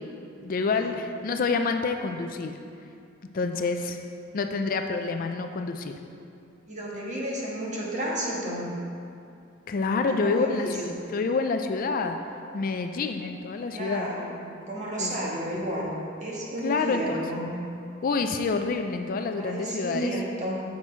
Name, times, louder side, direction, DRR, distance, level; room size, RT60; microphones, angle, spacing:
voice 1, 0.4-2.5 3.3-4.0 4.3-5.9 9.7-12.2 12.5-14.1 15.0-15.3 16.6-17.2 18.0-20.2, left 4 dB, 45° left, 6 dB, 0.4 m, -28 dB
voice 2, 6.7-8.7 9.9-10.8 13.7-15.9 16.2-17.5 19.4-20.6, equal, 35° right, -4 dB, 1.5 m, -32 dB
7.4 x 6.2 x 4.5 m, 2.5 s
head